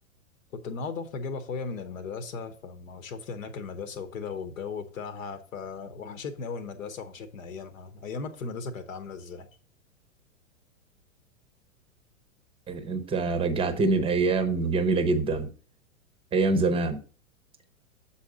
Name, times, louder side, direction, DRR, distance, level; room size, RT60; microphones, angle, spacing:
voice 1, 0.5-9.5, left 4 dB, 70° left, 1.2 m, -37 dB
voice 2, 12.7-15.5 16.3-17.0, right 3 dB, 15° right, 0.7 m, -25 dB
7.2 x 4.3 x 4.8 m
hypercardioid pair, 120°, 41 cm